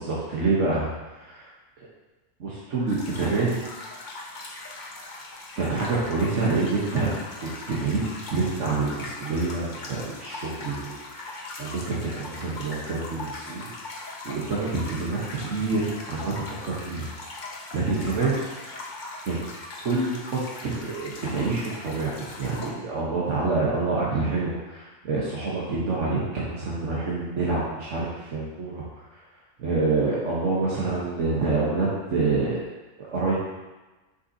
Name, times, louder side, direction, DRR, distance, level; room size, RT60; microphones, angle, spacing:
voice 1, 0.0-1.5 2.4-3.6 5.6-8.0 8.3-13.7 14.0-16.3 16.6-17.1 17.7-18.4 19.2-19.4 19.8-28.8 29.6-32.7 33.0-33.4, right 3 dB, 85° right, -6 dB, 1.4 m, -27 dB
sound 1, 2.9-22.7, left 2 dB, 45° left, 0.9 m, -40 dB
6.9 x 5.6 x 2.7 m, 1.1 s
omnidirectional pair, 1.2 m